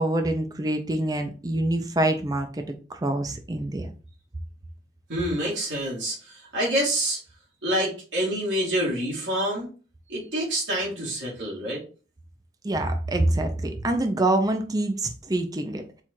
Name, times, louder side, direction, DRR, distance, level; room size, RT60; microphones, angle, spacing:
voice 1, 0.0-2.5 2.9-3.9 12.6-15.8, right 1 dB, 20° right, 6 dB, 0.5 m, -25 dB
voice 2, 5.1-7.2 7.6-9.7 10.1-11.8, right 1 dB, 90° right, -5 dB, 1.8 m, -27 dB
4.4 x 2.4 x 4.3 m, 0.36 s
head